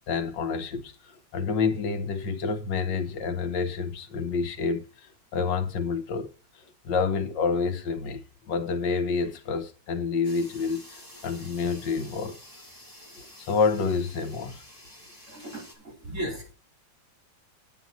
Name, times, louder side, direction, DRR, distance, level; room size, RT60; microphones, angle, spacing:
voice 1, 0.1-0.9 1.3-6.3 6.8-12.4 13.2-14.6, left 5 dB, 80° left, 1.7 m, -28 dB
sound 1, 10.2-15.7, left 1 dB, 10° right, 2.8 m, -49 dB
voice 2, 15.3-16.5, equal, 40° right, 4.7 m, -36 dB
9.3 x 8.5 x 4.1 m
omnidirectional pair, 1.9 m